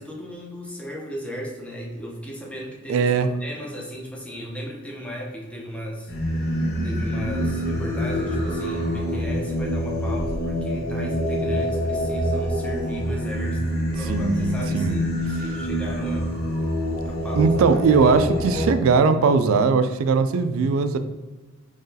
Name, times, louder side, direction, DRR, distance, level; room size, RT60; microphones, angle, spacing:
voice 1, 0.0-3.1 3.4-16.4 17.0-18.8, equal, 5° left, -2 dB, 0.6 m, -35 dB
voice 2, 2.9-3.3 14.0-15.0 17.4-21.0, right 5 dB, 70° right, 11 dB, 0.3 m, -20 dB
Singing, 6.1-18.7, equal, 50° left, 0.9 m, -26 dB
3.8 x 3.2 x 2.7 m, 1.2 s
head